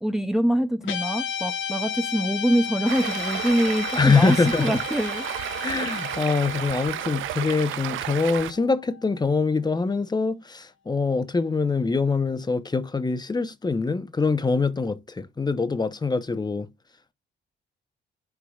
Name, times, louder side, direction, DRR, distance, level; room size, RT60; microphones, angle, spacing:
voice 1, 0.0-5.3, right 1 dB, ahead, 0.6 m, -24 dB
Guitar, 0.8-9.3, left 7 dB, 75° left, 1.4 m, -34 dB
Stream, 2.9-8.5, right 14 dB, 80° right, 0.5 m, -32 dB
voice 2, 4.0-4.8 5.6-16.7, left 4 dB, 20° left, 1.0 m, -24 dB
11.5 x 4.8 x 2.4 m
cardioid pair, 90°, 20 cm